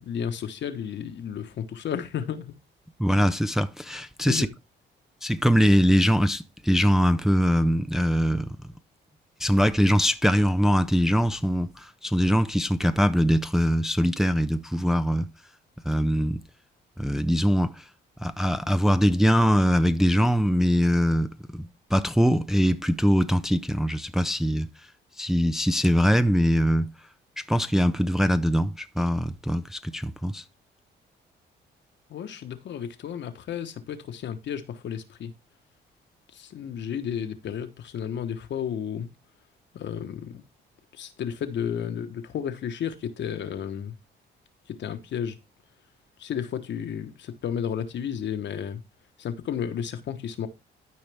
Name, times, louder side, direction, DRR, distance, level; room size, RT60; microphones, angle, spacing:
voice 1, 0.0-2.5 4.2-4.5 32.1-35.3 36.3-39.1 39.7-40.3 40.9-43.9 44.7-45.4 46.2-48.8 49.2-50.5, left 8 dB, 65° left, 1.2 m, -32 dB
voice 2, 3.0-4.5 5.2-8.6 9.4-15.3 15.8-16.4 17.0-17.9 18.2-24.7 25.2-26.9 27.4-30.4, equal, ahead, 0.5 m, -22 dB
12.5 x 4.9 x 3.4 m
cardioid pair, 90°, 20 cm